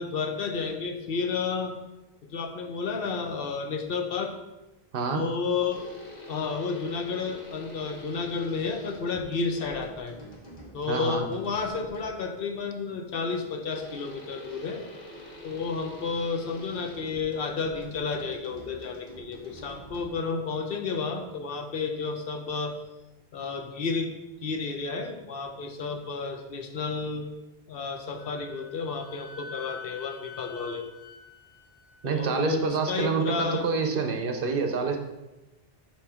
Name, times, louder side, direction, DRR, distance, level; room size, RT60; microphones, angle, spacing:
voice 1, 0.0-1.7 2.2-4.3 5.1-5.9 6.3-10.2 10.7-14.8 15.4-22.8 23.3-24.1 24.4-27.3 27.7-30.9 32.0-33.7, left 4 dB, 65° left, 5 dB, 0.9 m, -31 dB
sound 1, 5.7-12.3 13.7-20.4, equal, 45° left, 1.5 m, -46 dB
voice 2, 10.9-11.3 32.0-35.0, right 5 dB, 60° right, 4 dB, 0.9 m, -27 dB
Wind instrument woodwind instrument, 28.2-32.6, left 5 dB, 90° left, 1.0 m, -46 dB
7.1 x 3.1 x 4.9 m, 0.99 s
omnidirectional pair, 1.1 m